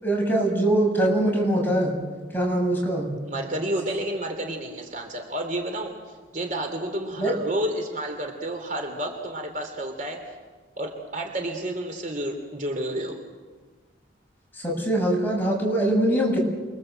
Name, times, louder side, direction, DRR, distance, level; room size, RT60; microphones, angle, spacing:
voice 1, 0.0-2.0 2.3-3.2 7.2-7.3 14.5-16.4, right 1 dB, 10° left, -1 dB, 7.5 m, -23 dB
voice 2, 3.2-10.3 10.8-13.2, right 1 dB, 40° right, 4 dB, 3.3 m, -30 dB
29.5 x 24.5 x 7.9 m, 1.4 s
head